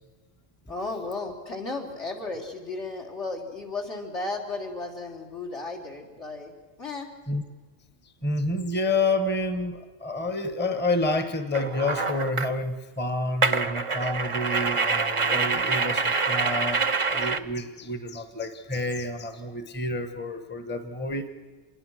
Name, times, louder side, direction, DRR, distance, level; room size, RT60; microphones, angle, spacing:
voice 1, 0.7-6.5 6.8-7.1, left 3 dB, 65° left, 3 dB, 4.1 m, -34 dB
voice 2, 8.2-21.3, left 2 dB, 10° left, 9 dB, 1.1 m, -29 dB
sound 1, 11.5-12.5 13.4-17.4, right 4 dB, 30° right, 0.8 m, -26 dB
26.5 x 21.5 x 6.4 m, 1.4 s
omnidirectional pair, 1.3 m